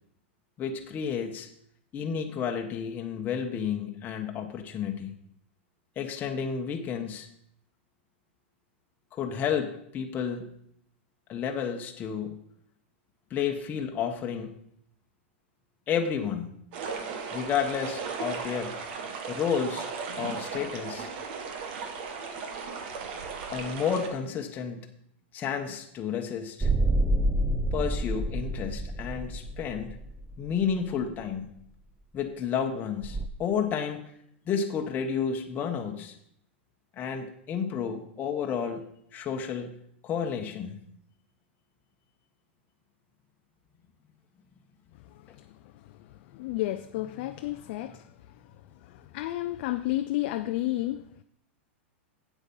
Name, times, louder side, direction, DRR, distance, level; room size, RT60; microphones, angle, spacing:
voice 1, 0.6-1.5 1.9-5.1 6.0-7.3 9.1-10.5 11.3-12.4 13.3-14.5 15.9-16.5 17.3-18.7 19.3-19.9 20.2-21.1 23.5-24.9 25.3-26.7 27.7-30.0 30.4-31.5 32.1-34.0 34.5-36.1 37.0-38.8 39.1-39.8 40.0-40.8, left 7 dB, 25° left, 3 dB, 1.1 m, -31 dB
sound 1, 16.7-24.1, right 5 dB, 55° right, 1.7 m, -36 dB
sound 2, 26.6-31.0 33.0-33.3, right 1 dB, 10° right, 0.7 m, -28 dB
voice 2, 46.3-48.1 48.8-51.2, left 15 dB, 55° left, 9 dB, 0.5 m, -31 dB
8.3 x 8.1 x 5.5 m, 0.70 s
hypercardioid pair, 130°, 7 cm